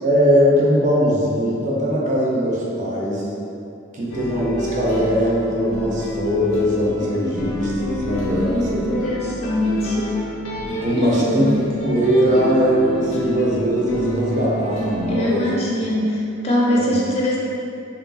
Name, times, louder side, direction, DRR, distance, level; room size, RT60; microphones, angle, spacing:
voice 1, 0.0-3.3 3.9-8.9 10.8-11.5 11.8-15.5 15.9-16.0 16.7-17.0, equal, 40° right, -4 dB, 0.5 m, -20 dB
sound 1, 4.1-15.4, left 1 dB, 85° left, 0.5 m, -28 dB
voice 2, 8.5-10.2 10.9-11.6 15.1-17.4, left 1 dB, 30° left, -5 dB, 0.4 m, -22 dB
3.0 x 2.6 x 2.6 m, 2.7 s
head